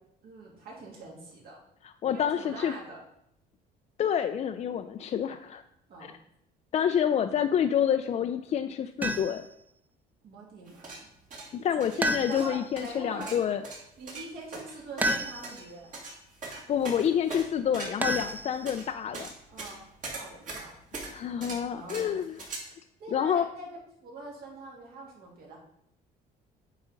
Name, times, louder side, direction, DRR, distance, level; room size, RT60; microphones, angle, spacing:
voice 1, 0.2-1.6 2.1-3.0 5.9-6.2 10.2-11.1 11.9-13.4 14.0-15.9 19.5-20.7 21.7-22.2 23.0-23.7 24.0-25.6, right 2 dB, 65° right, -2 dB, 2.4 m, -43 dB
voice 2, 1.8-2.7 4.0-5.6 6.7-9.5 11.5-13.6 16.5-19.3 21.0-22.4 23.1-23.5, left 9 dB, 40° left, 7 dB, 0.4 m, -28 dB
sound 1, 9.0-9.5 12.0-12.7 15.0-15.7 18.0-18.9, right 1 dB, 10° right, 0.6 m, -31 dB
sound 2, 10.7-22.6, right 3 dB, 50° right, 2.3 m, -41 dB
8.1 x 3.7 x 5.1 m, 0.77 s
cardioid pair, 110°, 17 cm